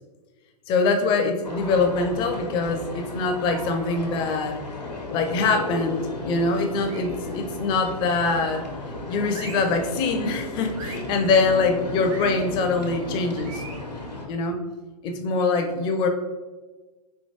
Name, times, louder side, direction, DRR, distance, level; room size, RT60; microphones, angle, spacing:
voice 1, 0.7-4.7 5.1-8.6 9.1-13.6 14.3-14.6 15.0-16.1, left 3 dB, 25° left, 5 dB, 0.4 m, -24 dB
sound 1, 1.4-14.3, left 2 dB, 90° left, 0.8 m, -34 dB
sound 2, 5.3-5.7 6.8-7.2 8.1-8.6 9.3-9.8 10.7-11.1 12.1-12.3 13.4-13.9, right 4 dB, 55° right, 0.8 m, -42 dB
4.5 x 2.7 x 2.8 m, 1.3 s
figure-of-eight pair, 105°, 21 cm